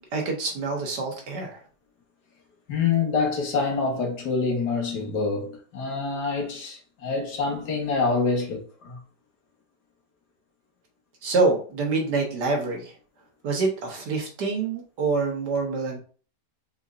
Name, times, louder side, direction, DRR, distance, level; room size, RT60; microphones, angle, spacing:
voice 1, 0.1-1.6 11.2-12.9 13.4-16.0, right 3 dB, 75° right, 1.7 m, -26 dB
voice 2, 2.7-9.0, left 4 dB, 70° left, 1.8 m, -26 dB
4.3 x 4.2 x 2.5 m
omnidirectional pair, 1.8 m